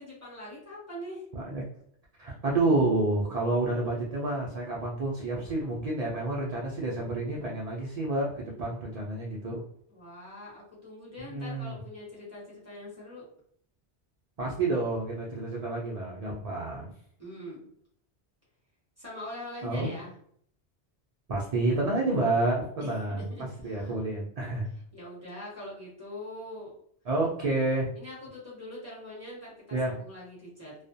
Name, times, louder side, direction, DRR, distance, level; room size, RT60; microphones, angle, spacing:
voice 1, 0.0-1.2 9.9-13.2 17.2-17.7 19.0-20.1 22.8-23.9 24.9-26.7 28.0-30.8, left 1 dB, 15° left, -8 dB, 0.9 m, -43 dB
voice 2, 1.3-1.6 2.2-9.6 11.2-11.8 14.4-16.9 19.6-19.9 21.3-23.3 23.6-24.7 27.1-27.9 29.7-29.9, right 2 dB, 60° right, -3 dB, 0.4 m, -29 dB
2.3 x 2.1 x 2.6 m, 0.64 s
omnidirectional pair, 1.1 m